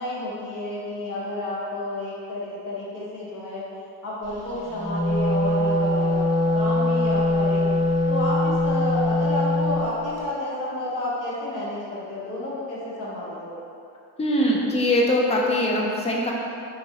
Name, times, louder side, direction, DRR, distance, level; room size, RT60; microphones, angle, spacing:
voice 1, 0.0-3.6 4.0-6.2 6.5-7.6 8.1-13.6, left 1 dB, 45° left, -7 dB, 1.1 m, -30 dB
Wind instrument woodwind instrument, 4.7-9.8, left 1 dB, 25° right, 0.8 m, -22 dB
voice 2, 14.2-16.3, left 1 dB, 15° left, -2 dB, 0.4 m, -22 dB
3.8 x 2.7 x 2.8 m, 2.6 s
cardioid pair, 105°, 42 cm